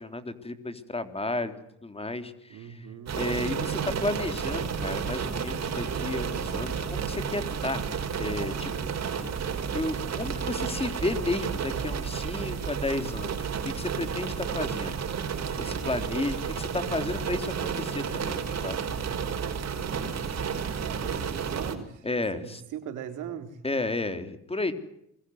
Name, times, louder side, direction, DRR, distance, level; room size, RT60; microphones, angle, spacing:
voice 1, 0.0-2.9 3.1-7.8 8.2-9.3 9.7-15.0 15.5-18.8 22.0-22.6 23.6-24.7, left 2 dB, 20° left, 8 dB, 3.6 m, -33 dB
voice 2, 2.5-3.2 20.8-22.1 22.3-23.6, right 9 dB, 85° right, 7 dB, 3.9 m, -39 dB
sound 1, 3.1-21.8, right 6 dB, 60° right, 5.1 m, -31 dB
27.5 x 22.5 x 8.0 m, 0.75 s
cardioid pair, 90°, 30 cm